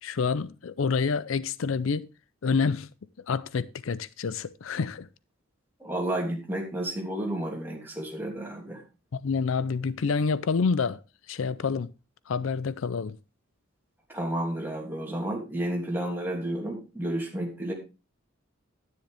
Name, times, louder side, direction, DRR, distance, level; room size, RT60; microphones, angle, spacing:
voice 1, 0.0-2.1 2.4-2.9 3.3-5.1 9.1-11.0 11.3-11.9 12.3-13.2, left 5 dB, 80° left, 0.5 m, -28 dB
voice 2, 5.8-8.8 14.1-17.7, right 1 dB, 10° right, 2.8 m, -31 dB
10.5 x 9.7 x 3.4 m
head